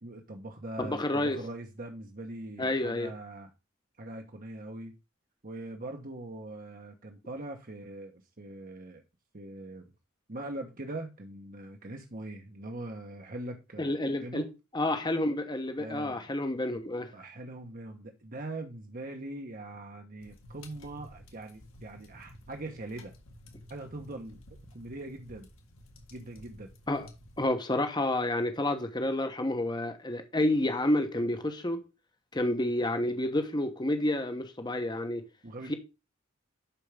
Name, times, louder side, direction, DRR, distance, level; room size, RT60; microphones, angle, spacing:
voice 1, 0.0-3.5 4.0-5.0 5.4-9.0 9.3-9.9 10.3-14.5 15.8-16.2 17.1-23.1 23.7-24.4 24.7-25.5 26.1-26.7 35.4-35.7, right 2 dB, 45° right, 1.1 m, -42 dB
voice 2, 0.8-1.4 2.6-3.1 13.8-14.5 14.7-17.1 26.9-27.1 27.4-31.8 32.3-35.3 35.7-35.8, left 1 dB, 20° left, 1.0 m, -29 dB
sound 1, 20.2-27.5, left 1 dB, 85° left, 1.9 m, -53 dB
11.5 x 4.6 x 3.5 m
head